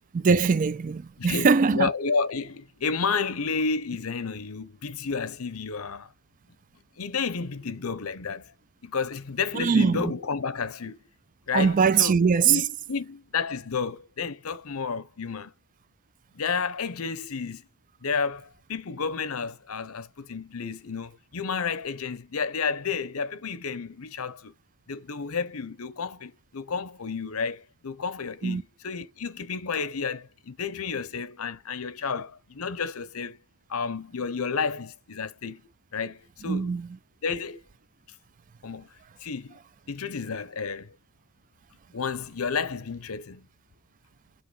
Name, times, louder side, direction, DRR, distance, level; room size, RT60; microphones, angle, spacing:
voice 1, 0.1-1.9 9.5-10.1 11.5-12.6 28.4-28.6 36.4-36.9, right 5 dB, 35° right, 0.4 m, -22 dB
voice 2, 1.2-6.1 7.0-8.5 8.8-11.0 11.5-15.5 16.3-17.6 18.0-24.5 24.9-33.4 33.7-35.6 35.9-36.8 37.2-37.6 38.6-38.9 39.2-39.6 39.9-41.0 41.9-43.5, left 5 dB, 75° left, 0.8 m, -31 dB
6.6 x 3.1 x 4.8 m
head